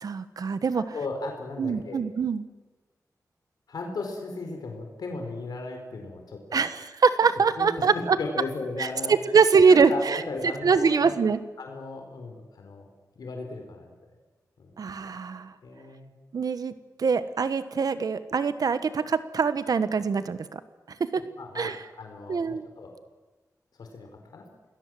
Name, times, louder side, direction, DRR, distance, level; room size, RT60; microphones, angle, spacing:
voice 1, 0.0-0.8 1.6-2.5 6.5-8.2 8.8-10.2 10.6-11.4 14.8-15.5 16.3-16.7 17.0-20.6 21.0-21.2 21.5-21.8 22.3-22.6, right 5 dB, 70° right, 12 dB, 1.2 m, -23 dB
voice 2, 0.7-2.0 3.7-6.6 7.6-9.1 9.7-11.1 11.6-12.9 13.2-13.9 14.6-14.7 15.6-16.1 21.4-22.9 23.8-24.5, left 3 dB, 85° left, 3 dB, 4.4 m, -36 dB
28.5 x 20.0 x 7.7 m, 1.2 s
wide cardioid pair, 115°, 7 cm